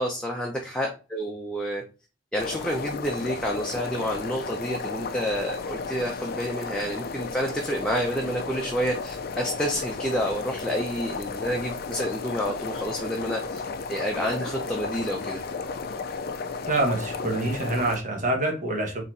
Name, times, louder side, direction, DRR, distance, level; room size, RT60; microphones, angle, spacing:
voice 1, 0.0-1.8 2.3-13.6 13.9-15.4, equal, 5° left, -1 dB, 0.7 m, -29 dB
sound 1, 2.4-18.0, left 4 dB, 55° left, 0.5 m, -34 dB
voice 2, 16.7-19.0, right 2 dB, 45° right, 2 dB, 1.4 m, -26 dB
4.1 x 3.1 x 4.0 m, 0.32 s
head